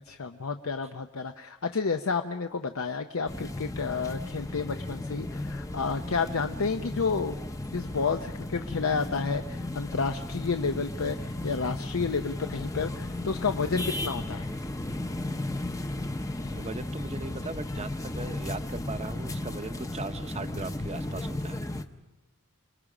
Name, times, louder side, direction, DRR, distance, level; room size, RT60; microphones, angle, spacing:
voice 1, 0.1-7.4 7.7-14.5, left 4 dB, 70° left, 7 dB, 0.7 m, -30 dB
sound 1, 3.3-21.8, left 1 dB, 15° left, 0.8 m, -35 dB
voice 2, 16.2-21.6, right 3 dB, 30° right, 10 dB, 0.8 m, -39 dB
29.0 x 21.5 x 5.0 m, 1.1 s
head